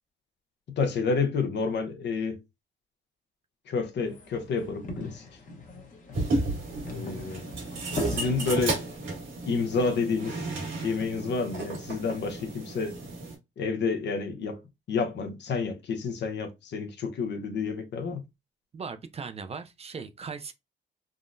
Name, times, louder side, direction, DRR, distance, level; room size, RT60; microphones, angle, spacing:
voice 1, 0.8-2.4 3.7-5.2 6.8-7.4 8.1-8.8 9.5-10.5 10.8-13.0 13.6-14.6 14.9-18.2, left 4 dB, 65° left, 0.8 m, -29 dB
sound 1, 3.9-9.0, left 2 dB, 40° left, 1.0 m, -39 dB
sound 2, 6.1-13.4, right 2 dB, 80° right, 1.6 m, -33 dB
voice 2, 18.7-20.5, right 5 dB, 30° right, 0.4 m, -38 dB
3.7 x 2.0 x 2.5 m
cardioid pair, 90°, 20 cm